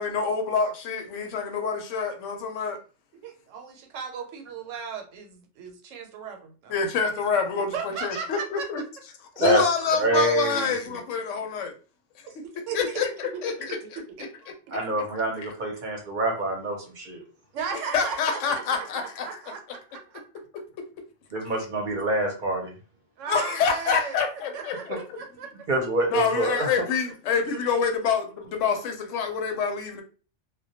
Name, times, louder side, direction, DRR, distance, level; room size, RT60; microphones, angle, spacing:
voice 1, 0.0-2.8 6.7-8.8 9.4-11.7 12.4-12.5 12.7-14.0 17.9-19.3 23.3-24.7 26.1-30.0, left 5 dB, 80° left, 0.9 m, -26 dB
voice 2, 3.2-6.8 7.5-8.7 12.3-12.4 12.7-13.0 13.3-14.5 17.5-20.2 23.2-24.2 24.5-25.5 27.5-27.6, right 6 dB, 90° right, 1.0 m, -36 dB
voice 3, 10.0-11.0 14.7-17.2 21.3-22.7 24.9-25.0 25.7-26.7, right 2 dB, 50° right, 0.6 m, -26 dB
2.2 x 2.1 x 2.7 m
omnidirectional pair, 1.3 m